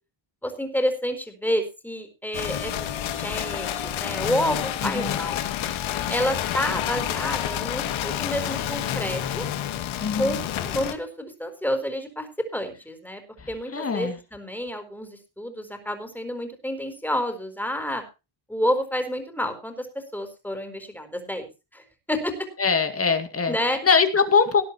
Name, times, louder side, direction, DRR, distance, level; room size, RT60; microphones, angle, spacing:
voice 1, 0.4-5.4 6.1-9.5 10.2-13.2 13.5-18.0 18.5-22.5 23.5-23.8, equal, 5° left, 7 dB, 4.4 m, -29 dB
sound 1, 2.3-10.9, left 11 dB, 80° left, 2.3 m, -29 dB
voice 2, 4.8-5.2 10.0-10.4 13.4-14.2 22.6-23.6 23.8-24.6, left 5 dB, 30° left, 8 dB, 2.2 m, -22 dB
19.0 x 11.0 x 3.0 m, 0.29 s
cardioid pair, 110°, 47 cm